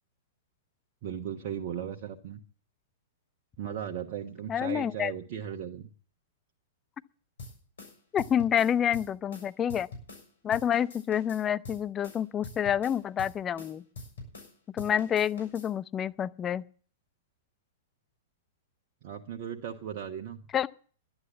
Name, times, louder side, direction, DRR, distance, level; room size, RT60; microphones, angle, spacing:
voice 1, 1.0-2.4 3.6-5.9 19.0-20.4, right 9 dB, 50° right, 1.2 m, -37 dB
voice 2, 4.5-5.1 8.1-9.9 10.4-13.8 14.7-16.6 20.5-20.7, left 9 dB, 20° left, 0.6 m, -28 dB
sound 1, 7.4-10.3 10.5-14.5 14.8-15.7, left 2 dB, 70° left, 6.7 m, -45 dB
11.5 x 10.5 x 8.2 m
figure-of-eight pair, 110°, 0 cm